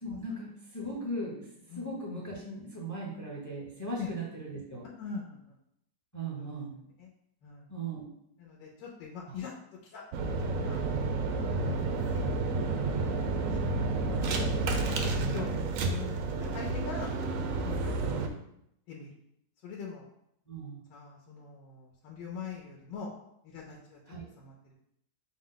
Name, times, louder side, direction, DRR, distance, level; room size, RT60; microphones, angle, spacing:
voice 1, 0.0-4.8 6.1-6.7 7.7-8.1 9.2-9.4 11.6-11.9 15.9-16.1 18.0-18.3 20.5-20.8 24.1-24.3, right 1 dB, 20° left, -4 dB, 0.5 m, -38 dB
voice 2, 5.0-5.6 6.4-6.5 7.0-7.1 7.4-7.7 8.4-9.5 9.9-10.8 11.5-12.2 12.8-13.6 14.2-15.5 15.8-16.1 16.4-17.1 17.6-18.3 18.9-19.1 19.6-20.0 20.9-23.1 23.4-24.0 24.4-24.5, left 5 dB, 85° left, -2 dB, 1.3 m, -43 dB
sound 1, 10.1-18.3, right 3 dB, 75° right, 0.7 m, -30 dB
6.0 x 2.1 x 3.8 m, 0.76 s
omnidirectional pair, 1.9 m